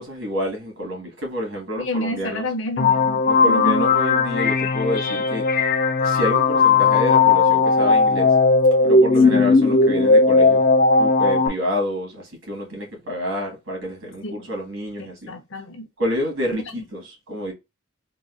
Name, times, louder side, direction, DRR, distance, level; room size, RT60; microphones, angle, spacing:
voice 1, 0.0-2.4 3.3-5.4 6.0-8.3 8.8-10.6 11.0-15.3 16.0-17.5, left 1 dB, 75° right, 1.7 m, -28 dB
voice 2, 1.8-3.9 9.2-9.5 14.2-14.5 15.0-15.9 16.5-16.8, left 1 dB, 65° left, 0.8 m, -30 dB
sound 1, 2.8-11.5, left 4 dB, 45° left, 0.4 m, -17 dB
3.9 x 2.3 x 2.4 m
head